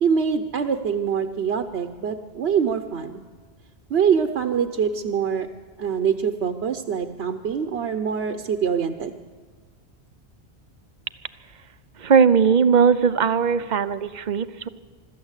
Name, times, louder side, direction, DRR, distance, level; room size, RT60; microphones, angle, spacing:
voice 1, 0.0-3.2 3.9-5.5 5.8-9.1, right 7 dB, 75° right, 7 dB, 1.1 m, -24 dB
voice 2, 12.0-14.7, right 6 dB, 50° right, 14 dB, 0.8 m, -19 dB
25.5 x 13.0 x 8.1 m, 1.5 s
omnidirectional pair, 1.1 m